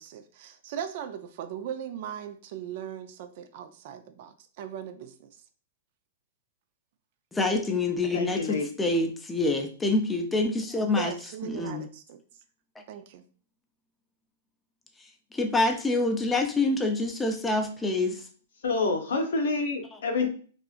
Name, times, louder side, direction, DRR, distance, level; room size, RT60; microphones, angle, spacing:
voice 1, 0.0-5.3 10.9-12.2 12.9-13.2, right 9 dB, 55° right, 9 dB, 0.4 m, -38 dB
voice 2, 7.3-11.1 11.5-11.8 15.3-18.2, left 2 dB, 10° left, 4 dB, 0.4 m, -26 dB
voice 3, 8.1-8.7 18.6-20.3, left 3 dB, 80° left, 4 dB, 0.7 m, -27 dB
2.7 x 2.4 x 2.4 m, 0.42 s
hypercardioid pair, 140°, 0 cm